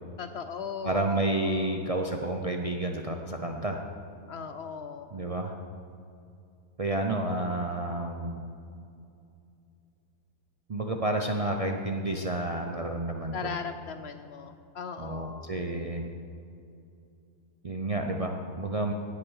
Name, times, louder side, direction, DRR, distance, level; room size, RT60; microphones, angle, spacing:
voice 1, 0.2-1.0 1.3-1.8 4.3-5.1 13.3-15.5, left 6 dB, 75° left, 9 dB, 0.6 m, -38 dB
voice 2, 0.8-3.8 5.1-5.5 6.8-8.4 10.7-13.5 15.0-16.1 17.6-18.9, right 2 dB, 50° right, 3 dB, 0.4 m, -30 dB
18.0 x 6.1 x 6.4 m, 2.6 s
omnidirectional pair, 1.7 m